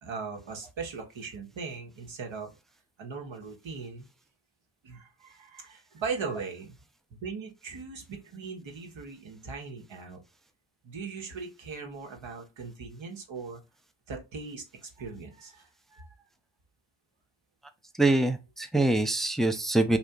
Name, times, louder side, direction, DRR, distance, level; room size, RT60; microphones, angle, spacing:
voice 1, 0.0-2.6 3.0-4.1 4.8-6.8 7.1-10.2 10.8-13.6 14.1-16.3, right 4 dB, 70° right, 1.1 m, -39 dB
voice 2, 18.0-20.0, right 2 dB, ahead, 0.4 m, -24 dB
2.8 x 2.4 x 3.4 m
supercardioid pair, 45°, 49 cm